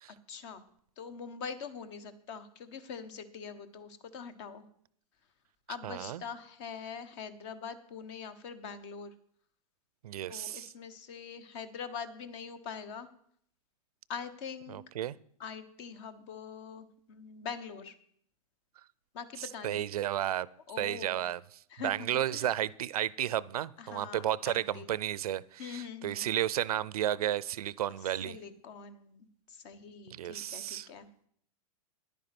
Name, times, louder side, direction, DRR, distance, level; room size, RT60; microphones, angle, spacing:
voice 1, 0.3-0.6 1.0-4.7 5.7-9.1 10.3-13.1 14.1-14.8 15.4-17.9 19.1-19.8 20.7-21.2 21.7-22.5 23.8-24.9 25.6-26.3 28.3-31.1, left 6 dB, 50° left, 12 dB, 1.3 m, -43 dB
voice 2, 5.8-6.2 10.0-10.7 14.7-15.2 19.4-20.5 20.8-21.4 21.8-28.4 30.1-30.9, right 12 dB, 75° right, 21 dB, 0.5 m, -33 dB
10.5 x 9.0 x 6.0 m, 0.64 s
hypercardioid pair, 125°, 19 cm